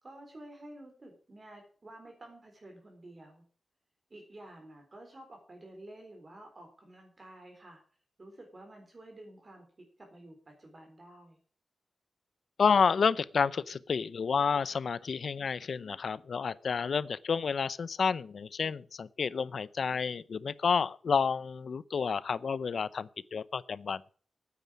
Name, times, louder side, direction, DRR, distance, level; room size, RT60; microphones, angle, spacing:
voice 1, 0.0-3.4 4.1-7.8 8.2-9.6 10.0-11.4, right 1 dB, 35° right, 3.7 m, -51 dB
voice 2, 12.6-24.0, left 6 dB, 65° left, 0.6 m, -30 dB
9.6 x 9.2 x 8.6 m
wide cardioid pair, 150°, 0 cm